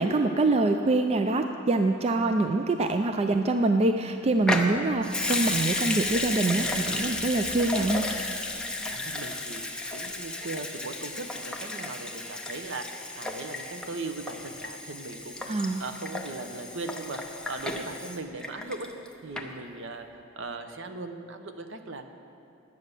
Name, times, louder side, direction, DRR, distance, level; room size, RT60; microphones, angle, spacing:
voice 1, 0.0-8.1 15.5-15.8, right 2 dB, 30° right, 6 dB, 0.4 m, -25 dB
Water tap faucet / Sink (filling or washing) / Liquid, 4.4-19.1 19.4-19.5, left 2 dB, 5° left, 0.7 m, -33 dB
voice 2, 8.9-12.9 13.1-15.3 15.8-18.9 19.2-22.1, right 3 dB, 65° right, 7 dB, 0.8 m, -38 dB
11.0 x 8.3 x 6.7 m, 2.7 s
head